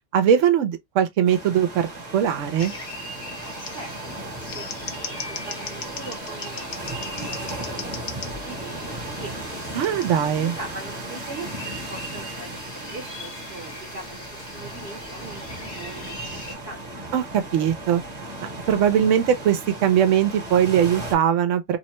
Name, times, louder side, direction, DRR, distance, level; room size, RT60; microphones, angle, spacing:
voice 1, 0.1-2.7 9.8-10.5 17.1-18.0 18.7-21.8, right 9 dB, 80° right, 0.9 m, -20 dB
sound 1, 1.3-21.2, right 1 dB, 35° right, 0.9 m, -36 dB
Scissors, 2.6-2.7 3.6-3.7 4.4-8.3 9.8-10.1, left 6 dB, 60° left, 0.5 m, -37 dB
sound 2, 2.6-16.6, left 1 dB, 40° left, 0.9 m, -41 dB
voice 2, 4.5-9.3 10.4-17.1, right 3 dB, 55° right, 0.9 m, -41 dB
2.7 x 2.1 x 2.9 m
omnidirectional pair, 1.3 m